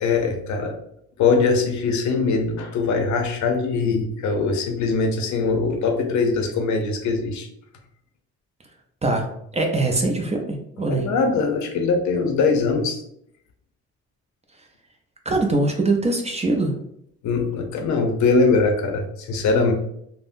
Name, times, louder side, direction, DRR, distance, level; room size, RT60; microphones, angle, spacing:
voice 1, 0.0-0.8 1.2-7.5 10.9-13.0 17.2-19.7, left 4 dB, 70° left, 4 dB, 0.6 m, -22 dB
voice 2, 9.5-11.1 15.3-16.7, right 2 dB, 20° right, 2 dB, 0.5 m, -22 dB
3.4 x 2.1 x 2.5 m, 0.73 s
cardioid pair, 90°, 30 cm